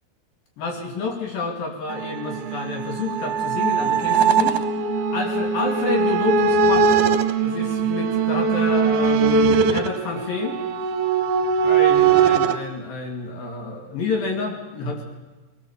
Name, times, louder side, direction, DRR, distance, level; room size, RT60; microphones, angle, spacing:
voice 1, 0.6-7.0 7.4-10.6 11.6-15.0, left 3 dB, 60° left, 2 dB, 3.8 m, -29 dB
sound 1, 1.9-12.6, right 5 dB, 70° right, 2.2 m, -20 dB
22.0 x 19.5 x 7.1 m, 1.2 s
omnidirectional pair, 4.7 m